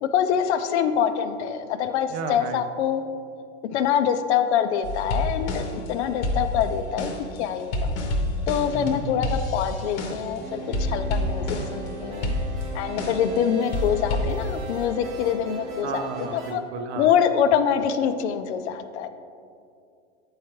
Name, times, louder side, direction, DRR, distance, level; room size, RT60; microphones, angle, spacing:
voice 1, 0.0-3.0 3.7-5.6 5.9-7.1 7.4-8.0 8.5-12.3 12.7-16.6 17.0-19.1, left 8 dB, 60° left, 9 dB, 0.5 m, -25 dB
voice 2, 2.1-2.6 15.8-17.1, right 6 dB, 60° right, 8 dB, 0.6 m, -33 dB
sound 1, 4.8-5.9 6.2-10.4 10.7-11.9 12.2-13.4 13.7-14.3, left 1 dB, 45° left, 0.9 m, -28 dB
sound 2, 10.4-16.5, right 1 dB, 80° right, 1.0 m, -37 dB
7.2 x 4.6 x 3.1 m, 2.4 s
hypercardioid pair, 125°, 38 cm